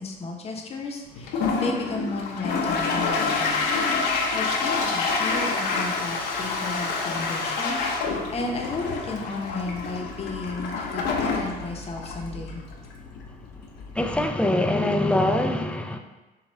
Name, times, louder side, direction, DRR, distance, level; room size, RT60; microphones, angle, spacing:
voice 1, 0.0-3.6 4.1-12.6, left 3 dB, 35° left, 1 dB, 0.8 m, -33 dB
Toilet flush, 1.1-14.3, left 4 dB, 75° left, 0.7 m, -28 dB
voice 2, 14.0-16.0, left 1 dB, 5° left, 4 dB, 0.3 m, -23 dB
6.0 x 2.4 x 3.3 m, 1.2 s
cardioid pair, 110°, 17 cm